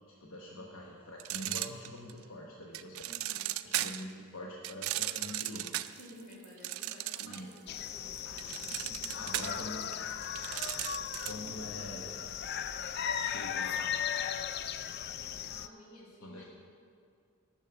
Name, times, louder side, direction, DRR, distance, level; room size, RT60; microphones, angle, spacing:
voice 1, 0.2-2.9 3.6-5.8 7.2-7.5 9.2-10.0 11.3-12.2 13.2-14.1 16.2-16.4, left 1 dB, 65° left, -2 dB, 1.0 m, -44 dB
sound 1, 1.2-2.2 2.7-4.1 4.6-7.6 7.9-11.5, right 14 dB, 70° right, 0.4 m, -36 dB
voice 2, 3.0-3.6 5.8-7.6 7.9-9.2 15.2-16.5, left 1 dB, 85° left, -3 dB, 2.3 m, -53 dB
sound 2, 7.7-15.7, left 9 dB, 50° left, 0.3 m, -37 dB
10.5 x 6.4 x 6.9 m, 2.3 s
head